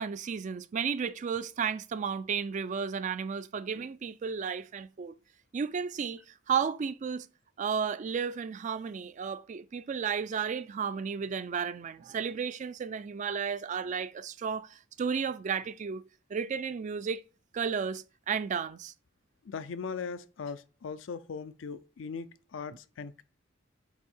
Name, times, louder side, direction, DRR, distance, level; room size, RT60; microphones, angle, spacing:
voice 1, 0.0-5.1 5.5-7.3 7.6-17.2 17.5-18.9, right 6 dB, 40° right, 0.3 m, -33 dB
voice 2, 19.4-23.2, left 5 dB, 70° left, 0.4 m, -39 dB
8.2 x 2.7 x 4.4 m
head